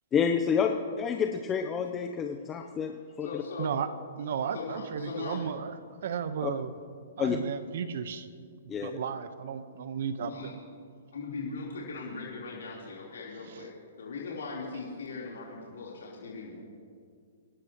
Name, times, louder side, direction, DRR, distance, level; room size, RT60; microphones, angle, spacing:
voice 1, 0.1-3.4 6.4-6.5 7.2-7.4 8.7-9.0, left 7 dB, 20° left, 4 dB, 0.8 m, -29 dB
voice 2, 3.2-3.7 4.5-5.5 10.2-10.5 11.1-13.7 14.0-16.6, left 4 dB, 80° left, -5 dB, 3.9 m, -39 dB
voice 3, 4.2-6.7 7.2-8.3 8.8-10.5 13.5-13.6, right 7 dB, 65° right, 11 dB, 1.1 m, -34 dB
26.0 x 12.0 x 3.1 m, 2.1 s
hypercardioid pair, 130°, 0 cm